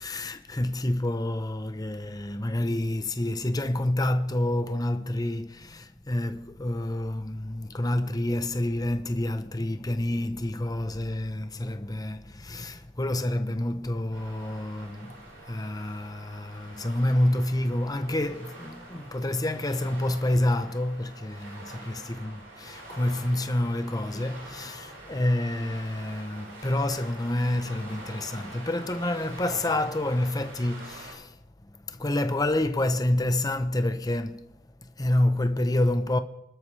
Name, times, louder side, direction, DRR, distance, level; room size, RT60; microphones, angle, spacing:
voice 1, 0.0-36.2, left 1 dB, 15° left, 0.8 m, -28 dB
sound 1, 14.1-31.1, right 2 dB, 65° right, 7.1 m, -46 dB
26.0 x 13.0 x 3.3 m
head